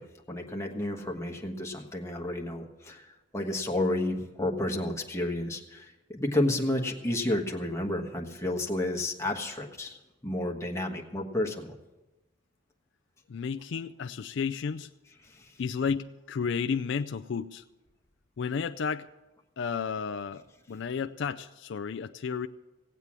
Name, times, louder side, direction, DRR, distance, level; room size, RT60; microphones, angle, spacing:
voice 1, 0.0-3.1 3.3-10.0 10.2-11.7 15.3-15.5, left 1 dB, 15° left, 1 dB, 1.4 m, -31 dB
voice 2, 13.3-14.9 15.6-17.6 18.4-19.1 19.6-22.5, left 6 dB, 60° left, 9 dB, 0.4 m, -32 dB
17.5 x 8.1 x 7.3 m, 1.1 s
head